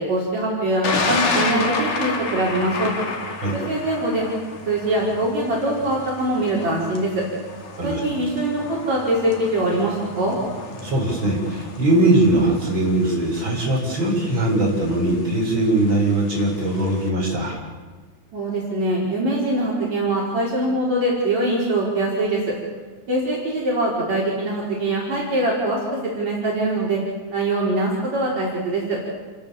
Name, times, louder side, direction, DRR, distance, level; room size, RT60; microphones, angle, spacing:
voice 1, 0.0-2.9 3.5-4.3 4.7-7.2 7.8-10.4 18.3-22.4 23.1-25.8 26.2-27.0 27.3-29.0, right 1 dB, 60° right, -4 dB, 6.1 m, -23 dB
Thunder, 0.8-17.1, left 3 dB, 75° left, 4.2 m, -31 dB
voice 2, 10.8-17.6, right 1 dB, 40° right, -2 dB, 7.5 m, -20 dB
29.5 x 22.5 x 7.3 m, 1.4 s
omnidirectional pair, 3.5 m